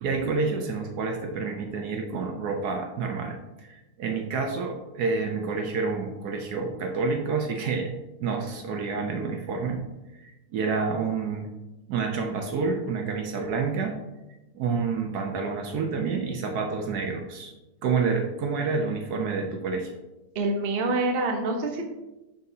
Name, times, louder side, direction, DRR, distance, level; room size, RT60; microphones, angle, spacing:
voice 1, 0.0-7.9 8.2-9.8 10.2-11.5 11.9-14.0 14.5-17.5 17.8-19.9, right 4 dB, 70° right, 3 dB, 1.1 m, -28 dB
voice 2, 20.3-21.8, right 2 dB, 45° right, 2 dB, 0.8 m, -26 dB
10.5 x 4.1 x 2.7 m, 1.0 s
omnidirectional pair, 1.9 m